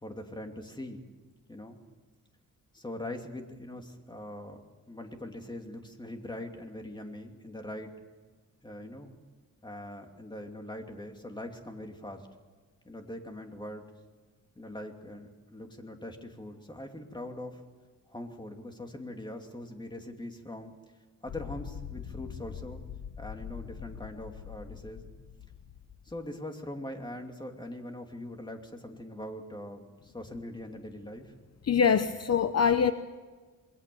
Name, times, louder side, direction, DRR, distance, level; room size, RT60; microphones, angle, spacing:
voice 1, 0.0-1.0 1.5-1.8 2.7-7.9 8.6-9.1 9.6-12.3 12.8-13.9 14.6-17.6 18.1-20.7 21.2-22.8 23.2-25.1 26.0-31.3, left 1 dB, 15° left, 2.8 m, -42 dB
sound 1, 21.3-26.3, left 8 dB, 65° left, 1.1 m, -43 dB
voice 2, 31.6-32.9, left 7 dB, 50° left, 0.8 m, -24 dB
28.0 x 21.5 x 7.1 m
wide cardioid pair, 125°, 32 cm